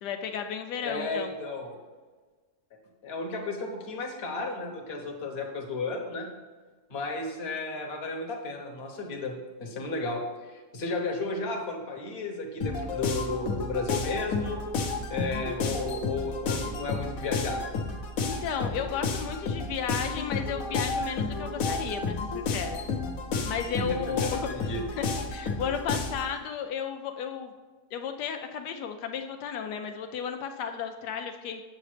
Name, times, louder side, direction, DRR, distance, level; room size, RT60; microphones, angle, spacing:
voice 1, 0.0-1.3 18.2-22.8 23.4-27.5 27.9-31.6, left 7 dB, 85° left, 5 dB, 1.2 m, -34 dB
voice 2, 0.8-1.8 3.0-6.3 6.9-14.6 15.1-17.6 23.8-24.8, left 3 dB, 45° left, 1 dB, 1.2 m, -33 dB
sound 1, 12.6-26.3, left 4 dB, 60° left, 1.2 m, -31 dB
7.9 x 6.8 x 3.3 m, 1.4 s
omnidirectional pair, 1.7 m